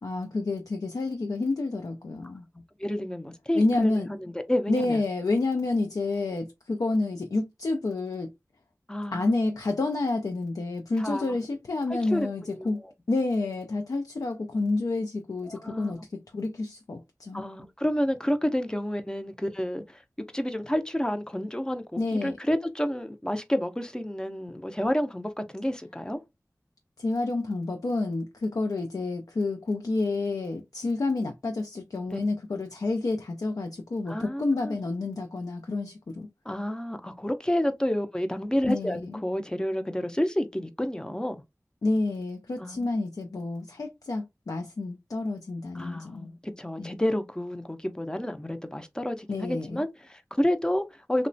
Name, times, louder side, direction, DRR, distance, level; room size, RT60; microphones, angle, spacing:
voice 1, 0.0-2.4 3.5-4.1 4.7-8.3 9.1-12.8 13.1-17.4 22.0-22.4 27.0-36.3 38.7-39.2 41.8-46.3 46.8-46.9 49.3-49.8, left 2 dB, 80° left, 0.4 m, -29 dB
voice 2, 2.8-5.0 8.9-9.6 11.0-11.4 12.1-12.3 12.5-12.7 15.5-15.9 17.3-20.0 20.3-26.2 32.1-32.2 34.1-34.8 36.5-41.4 42.6-43.0 45.7-51.3, equal, 15° left, 0.4 m, -30 dB
2.9 x 2.1 x 2.5 m
wide cardioid pair, 60°, 6 cm